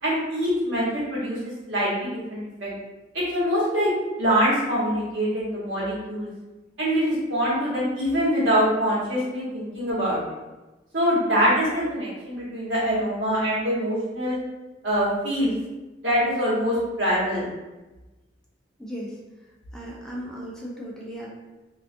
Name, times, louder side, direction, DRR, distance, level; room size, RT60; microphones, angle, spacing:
voice 1, 0.0-2.7 3.1-3.9 4.2-6.3 6.8-10.2 10.9-14.4 14.8-15.5 16.0-17.5, equal, 75° right, -8 dB, 1.1 m, -24 dB
voice 2, 18.8-19.2 19.7-21.3, equal, 5° left, -4 dB, 0.3 m, -36 dB
2.4 x 2.3 x 2.5 m, 1.1 s
head